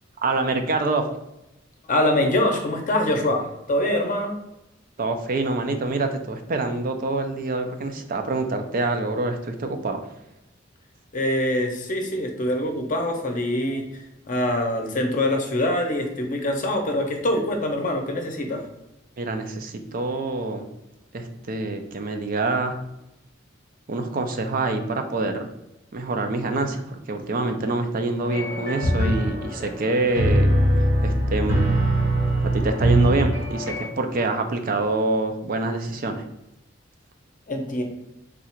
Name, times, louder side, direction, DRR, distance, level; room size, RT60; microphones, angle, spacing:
voice 1, 0.2-1.1 5.0-10.0 19.2-20.7 21.1-22.7 23.9-25.5 25.9-30.5 31.0-31.7 32.4-36.3, right 2 dB, 45° right, 6 dB, 0.4 m, -26 dB
voice 2, 1.9-4.4 11.1-18.6 37.5-37.8, left 1 dB, 45° left, 4 dB, 0.7 m, -24 dB
sound 1, 28.2-33.9, right 1 dB, 75° right, 1.3 m, -22 dB
3.7 x 2.4 x 4.3 m, 0.89 s
head